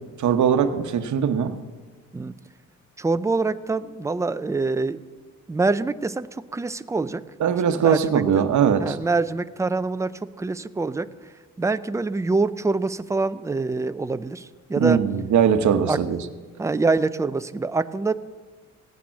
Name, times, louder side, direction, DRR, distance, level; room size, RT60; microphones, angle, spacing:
voice 1, 0.2-1.5 7.4-8.9 14.8-16.2, right 7 dB, 60° right, 8 dB, 1.0 m, -20 dB
voice 2, 3.0-5.0 5.5-7.3 7.7-8.5 8.8-11.3 11.6-15.0 15.9-16.0 16.6-18.1, right 3 dB, 10° right, 12 dB, 0.4 m, -25 dB
17.5 x 8.8 x 7.1 m, 1.5 s
cardioid pair, 120°, 32 cm